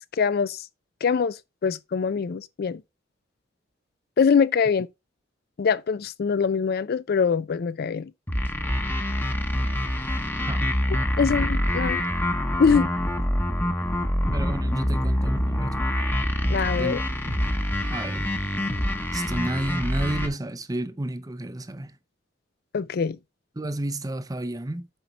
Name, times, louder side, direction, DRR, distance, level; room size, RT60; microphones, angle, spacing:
voice 1, 0.2-0.7 1.0-2.8 4.2-4.9 5.6-8.1 11.2-12.0 12.6-12.9 16.5-17.0 22.7-23.2, left 6 dB, 55° left, 0.4 m, -23 dB
sound 1, 8.3-20.3, equal, 10° left, 0.9 m, -25 dB
voice 2, 14.3-15.8 16.8-17.4 17.9-18.3 19.1-22.0 23.6-24.9, right 1 dB, 20° right, 0.6 m, -31 dB
8.0 x 4.3 x 4.5 m
head